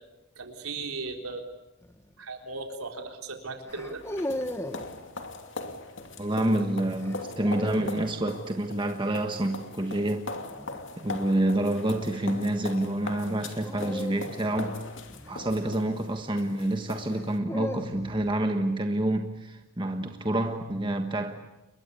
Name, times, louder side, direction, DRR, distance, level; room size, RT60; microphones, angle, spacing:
voice 1, 0.4-1.4 2.2-4.0, right 3 dB, 85° right, 3.9 m, -37 dB
sound 1, 1.8-2.1 3.7-4.9 7.0-8.0 10.4-10.8 13.6-16.0 17.0-18.3, left 1 dB, 10° left, 1.5 m, -37 dB
sound 2, 3.7-17.4, left 3 dB, 60° left, 2.7 m, -40 dB
voice 2, 6.2-10.3 11.0-14.8 15.3-21.4, right 1 dB, 20° right, 1.4 m, -28 dB
30.0 x 22.5 x 8.4 m
head